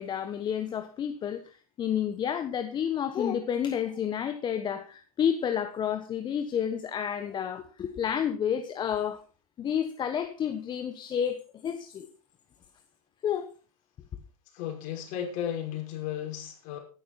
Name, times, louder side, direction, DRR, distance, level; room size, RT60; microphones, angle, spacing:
voice 1, 0.0-1.4 1.8-9.2 9.6-12.1 13.2-13.5, left 8 dB, 25° left, 1.2 m, -30 dB
voice 2, 14.5-16.8, left 10 dB, 45° left, 5.8 m, -34 dB
15.0 x 11.5 x 4.2 m
hypercardioid pair, 115°, 19 cm